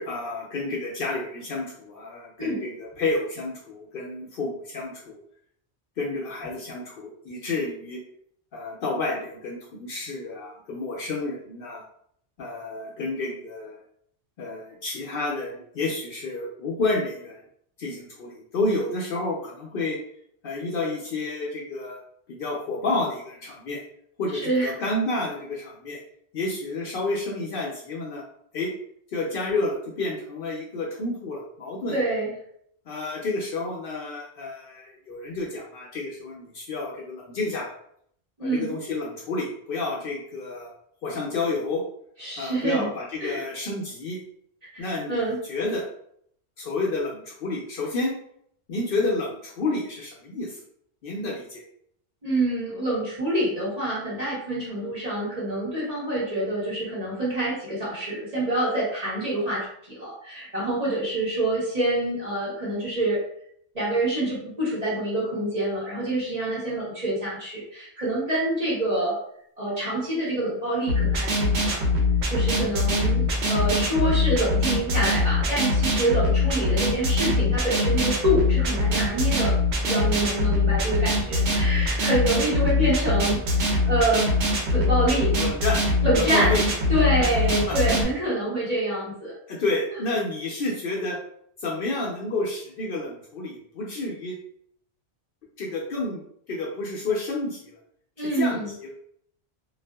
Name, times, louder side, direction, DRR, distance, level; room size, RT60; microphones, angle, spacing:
voice 1, 0.0-5.2 6.0-8.0 8.5-11.8 12.4-13.8 14.4-17.4 17.8-20.0 20.4-22.0 22.3-23.8 24.2-26.0 26.3-28.2 28.5-28.7 29.1-31.9 32.9-37.8 38.4-40.7 41.0-41.8 42.4-44.2 44.8-45.2 45.5-45.8 46.6-48.1 48.7-50.6 51.0-51.6 82.8-83.0 85.4-85.8 86.1-86.6 87.2-87.3 87.7-87.8 89.5-91.2 91.6-94.4 95.6-96.2 96.5-97.8 98.2-98.9, left 2 dB, 65° left, -3 dB, 0.7 m, -30 dB
voice 2, 31.9-32.3 38.4-38.8 42.2-42.9 43.2-43.4 44.7-45.4 52.2-63.2 63.7-69.2 69.6-71.8 72.3-79.5 79.8-84.3 84.7-85.3 86.0-86.5 86.9-89.3 98.2-98.7, right 1 dB, 35° right, -7 dB, 1.1 m, -26 dB
sound 1, 70.9-88.0, left 2 dB, 80° right, 0.9 m, -23 dB
2.6 x 2.4 x 2.2 m, 0.67 s
omnidirectional pair, 1.1 m